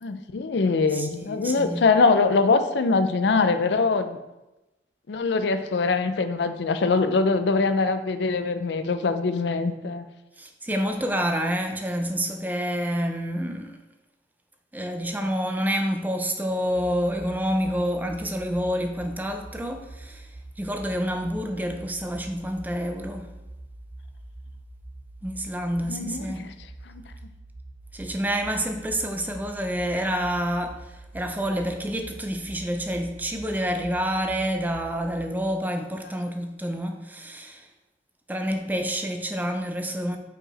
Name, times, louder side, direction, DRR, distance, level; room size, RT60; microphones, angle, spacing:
voice 1, 0.0-4.2 5.1-10.1 25.9-26.5 26.9-27.0, left 4 dB, 75° left, 0.5 m, -23 dB
voice 2, 0.9-1.8 10.4-13.8 14.7-23.3 25.2-26.5 27.9-37.7 38.3-40.2, equal, 10° right, 0.5 m, -28 dB
sound 1, 16.7-35.3, right 2 dB, 85° right, 1.2 m, -44 dB
5.2 x 4.8 x 4.2 m
head